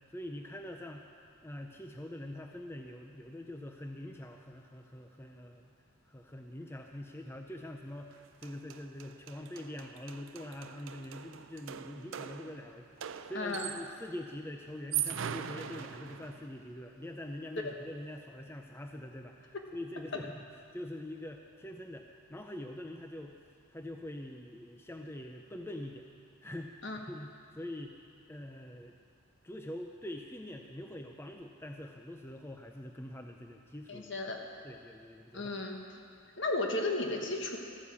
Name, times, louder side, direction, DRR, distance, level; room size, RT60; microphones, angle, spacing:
voice 1, 0.1-1.0 1.4-5.6 6.1-20.5 20.7-23.4 23.7-26.1 26.4-28.0 28.3-29.0 29.4-34.1 34.6-35.6, left 1 dB, 10° left, 3 dB, 0.5 m, -44 dB
sound 1, 8.1-8.2 8.4-14.1 14.7-16.5, right 10 dB, 65° right, 0.4 m, -41 dB
voice 2, 13.3-13.7 17.6-17.7 26.8-27.0 33.9-34.4 35.3-35.8 36.4-37.6, left 2 dB, 55° left, 2 dB, 1.3 m, -34 dB
13.5 x 9.5 x 7.1 m, 2.3 s
head